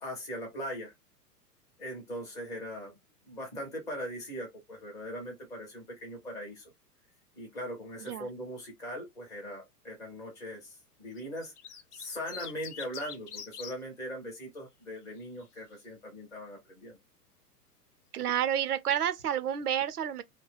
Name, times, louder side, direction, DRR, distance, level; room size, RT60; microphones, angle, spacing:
voice 1, 0.0-0.9 1.8-2.9 3.3-6.7 7.4-11.5 11.9-17.0, equal, 10° left, 0.4 m, -40 dB
sound 1, 11.2-13.7 15.0-15.4, left 8 dB, 70° left, 0.6 m, -44 dB
voice 2, 18.1-20.2, right 9 dB, 70° right, 0.6 m, -30 dB
2.8 x 2.1 x 3.1 m
figure-of-eight pair, 100°, 47 cm